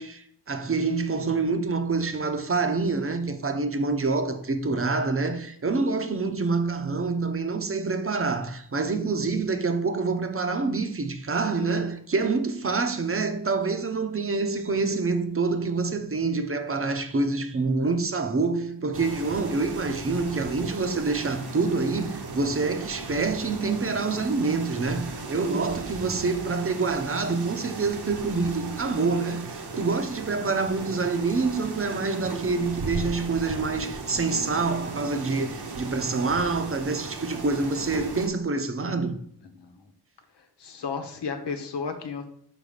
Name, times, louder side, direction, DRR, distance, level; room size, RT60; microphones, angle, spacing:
voice 1, 0.0-39.2, right 4 dB, 35° right, 0.8 m, -26 dB
sound 1, 18.9-38.3, right 3 dB, 70° right, 1.2 m, -37 dB
voice 2, 40.4-42.3, left 5 dB, 80° left, 1.1 m, -34 dB
5.6 x 4.1 x 5.0 m
cardioid pair, 75°, 41 cm